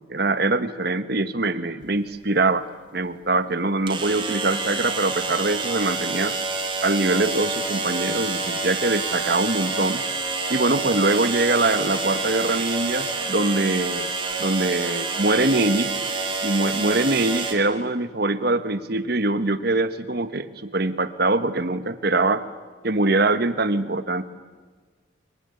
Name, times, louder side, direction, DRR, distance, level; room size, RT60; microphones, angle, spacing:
voice 1, 0.1-2.7 2.9-6.4 6.8-10.0 10.5-14.1 14.4-15.9 16.4-22.4 22.8-24.2, right 2 dB, 50° right, 11 dB, 1.3 m, -23 dB
sound 1, 1.8-1.9 3.9-17.5, right 3 dB, 25° right, 3.5 m, -28 dB
24.0 x 23.5 x 9.8 m, 1.4 s
head